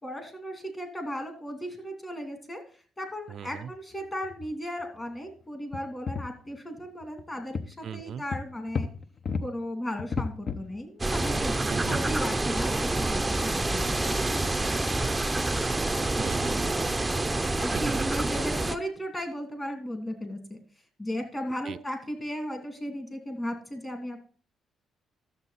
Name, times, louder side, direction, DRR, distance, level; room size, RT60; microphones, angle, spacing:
voice 1, 0.0-2.6 3.0-8.9 9.4-11.6 11.9-14.3 16.4-16.9 17.6-20.6 21.0-24.2, equal, 20° left, 4 dB, 2.9 m, -36 dB
voice 2, 3.3-3.7 7.8-8.2 11.7-12.0 15.7-17.1 17.7-18.2 21.6-21.8, right 8 dB, 60° right, 11 dB, 0.4 m, -39 dB
sound 1, 3.7-3.9 4.2-4.5 4.8-4.9 5.7-6.5 7.0-7.2 7.6-7.7 8.3-9.5 10.0-10.8 11.2-11.3 11.5-11.7 12.4-12.5, left 5 dB, 45° left, 0.9 m, -33 dB
sound 2, 11.0-18.8, right 2 dB, 15° right, 0.6 m, -27 dB
12.5 x 7.4 x 4.1 m, 0.40 s
cardioid pair, 90°, 0 cm